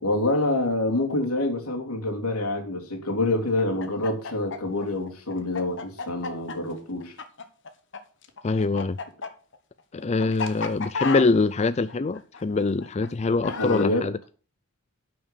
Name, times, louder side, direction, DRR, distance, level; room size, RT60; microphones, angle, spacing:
voice 1, 0.0-7.1 13.5-14.1, left 2 dB, 85° left, 3.1 m, -26 dB
Chicken rooster, 3.5-13.9, left 4 dB, 55° left, 1.4 m, -33 dB
voice 2, 8.4-9.0 9.9-14.2, left 3 dB, 30° left, 0.4 m, -24 dB
11.0 x 6.1 x 6.8 m
head